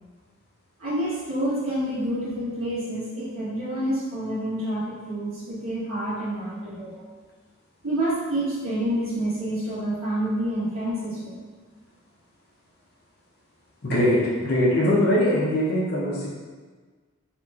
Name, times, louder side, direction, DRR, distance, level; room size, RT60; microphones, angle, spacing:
voice 1, 0.8-7.1 7.8-11.4, right 1 dB, 75° right, -11 dB, 1.4 m, -28 dB
voice 2, 13.8-16.3, left 1 dB, 50° left, -6 dB, 0.8 m, -21 dB
4.2 x 3.0 x 3.6 m, 1.4 s
head